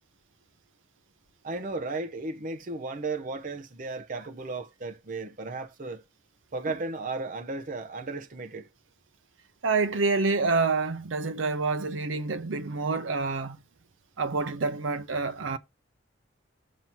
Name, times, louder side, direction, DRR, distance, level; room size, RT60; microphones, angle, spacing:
voice 1, 1.4-6.0 6.5-8.7, right 3 dB, 45° right, 0.7 m, -35 dB
voice 2, 9.6-13.6 14.2-15.6, right 4 dB, 80° right, 0.7 m, -27 dB
7.4 x 2.8 x 5.9 m
head